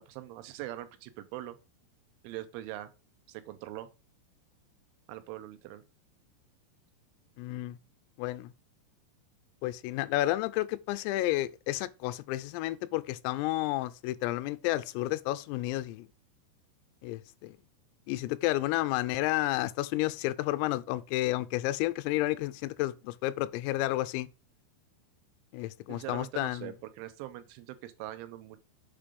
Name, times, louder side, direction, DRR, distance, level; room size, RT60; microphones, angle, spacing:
voice 1, 0.1-1.6 2.2-2.9 3.3-3.9 5.1-5.8 25.9-28.6, right 14 dB, 80° right, 2.9 m, -42 dB
voice 2, 7.4-7.8 8.2-8.5 9.6-16.1 17.0-17.6 18.1-24.3 25.5-26.7, left 16 dB, 85° left, 3.3 m, -31 dB
7.5 x 5.3 x 5.2 m
omnidirectional pair, 5.9 m